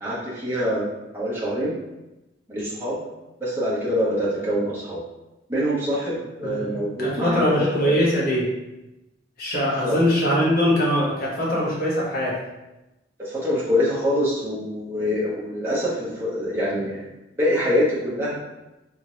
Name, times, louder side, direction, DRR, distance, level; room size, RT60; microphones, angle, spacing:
voice 1, 0.0-0.9 1.1-1.8 2.5-3.0 3.4-5.0 5.5-7.9 9.8-10.0 13.2-17.1 17.4-18.4, equal, 10° right, -8 dB, 1.0 m, -25 dB
voice 2, 6.4-8.5 9.4-12.4, equal, 55° left, -5 dB, 1.0 m, -22 dB
3.5 x 2.8 x 3.1 m, 0.98 s
head